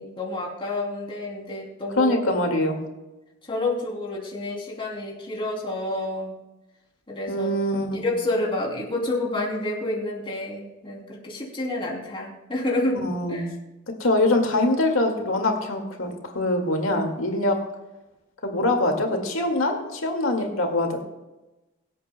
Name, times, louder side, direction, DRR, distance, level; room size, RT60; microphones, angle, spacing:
voice 1, 0.0-2.3 3.5-6.3 7.1-7.5 7.9-13.0 13.3-13.5, left 2 dB, 25° left, -1 dB, 3.0 m, -29 dB
voice 2, 2.0-2.8 7.3-7.9 13.0-13.5 14.0-17.6 18.4-21.0, left 1 dB, 75° left, 3 dB, 2.0 m, -23 dB
23.5 x 8.5 x 2.2 m, 1.0 s
head